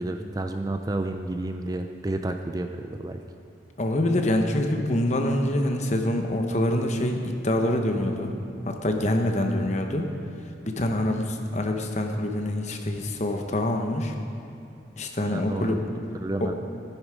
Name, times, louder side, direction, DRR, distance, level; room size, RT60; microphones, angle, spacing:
voice 1, 0.0-3.2 15.2-15.8 16.2-16.5, right 2 dB, 20° right, 6 dB, 0.4 m, -30 dB
voice 2, 3.8-8.3 8.7-10.1 10.7-14.1 15.0-15.8 16.4-16.5, left 1 dB, 35° left, 4 dB, 0.9 m, -25 dB
13.0 x 10.5 x 5.0 m, 2.5 s
head